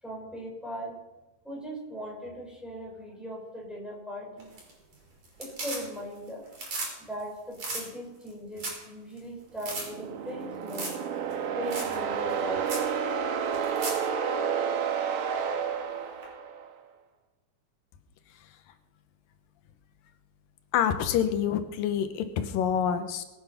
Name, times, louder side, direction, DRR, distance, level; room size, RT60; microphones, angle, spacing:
voice 1, 0.0-1.0 1.4-4.5 5.4-6.4 7.0-10.9 11.5-12.9, equal, ahead, -2 dB, 5.2 m, -39 dB
sound 1, 4.4-4.9 5.2-6.2 6.5-6.9 7.2-7.3 7.5-7.8 8.3-8.4 8.6-8.9 9.2-9.3 9.6-9.8 10.7-11.0 11.3-11.4 11.7-11.9 12.3-12.4 12.7-12.9 13.5-14.0 16.2-16.3, right 2 dB, 50° right, 6.0 m, -35 dB
sound 2, 9.7-16.7, right 7 dB, 75° right, 2.8 m, -30 dB
voice 2, 20.7-23.2, left 8 dB, 85° left, 8 dB, 2.7 m, -27 dB
21.5 x 9.5 x 5.8 m, 1.1 s
omnidirectional pair, 3.9 m